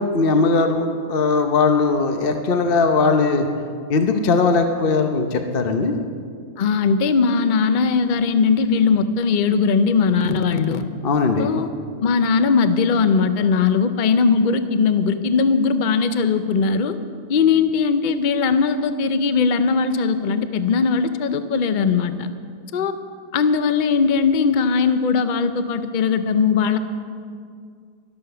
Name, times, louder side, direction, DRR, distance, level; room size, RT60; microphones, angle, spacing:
voice 1, 0.0-3.5 3.9-5.9 11.0-11.5, left 4 dB, 45° left, 6 dB, 0.9 m, -19 dB
voice 2, 6.6-10.8 11.4-11.7 12.0-17.0 17.3-22.3 22.7-22.9 23.3-26.8, left 5 dB, 75° left, 10 dB, 0.4 m, -19 dB
12.5 x 12.5 x 6.8 m, 2.2 s
omnidirectional pair, 1.7 m